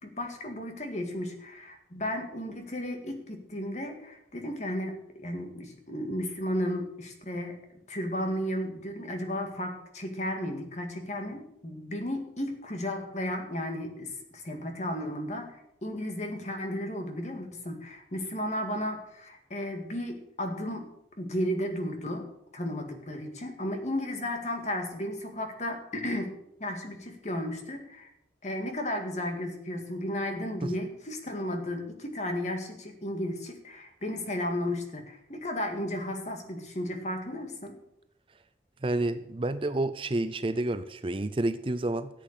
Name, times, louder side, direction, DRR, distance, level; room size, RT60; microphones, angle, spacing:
voice 1, 0.0-7.6 7.9-20.8 21.2-22.3 22.5-26.3 26.6-28.1 28.4-37.7, left 1 dB, 40° left, 4 dB, 2.0 m, -34 dB
voice 2, 38.8-42.1, right 2 dB, 30° right, 11 dB, 0.5 m, -29 dB
13.5 x 8.2 x 6.7 m, 0.79 s
head